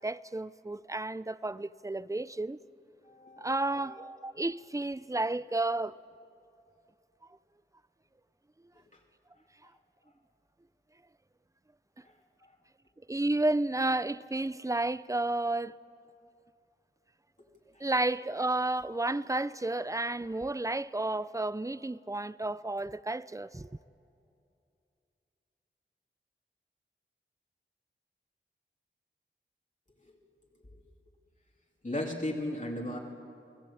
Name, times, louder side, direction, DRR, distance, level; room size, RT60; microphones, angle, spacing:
voice 1, 0.0-2.6 3.4-5.9 13.1-15.7 17.8-23.7, right 2 dB, 15° right, 0.5 m, -31 dB
voice 2, 3.0-4.1 8.9-9.0 9.4-9.5 12.0-12.1 12.4-12.6 17.4-17.5 17.7-17.9 30.1-30.2 30.6-30.8 31.8-33.0, left 1 dB, 35° left, 2.7 m, -37 dB
28.0 x 18.5 x 8.6 m
wide cardioid pair, 60°, 21 cm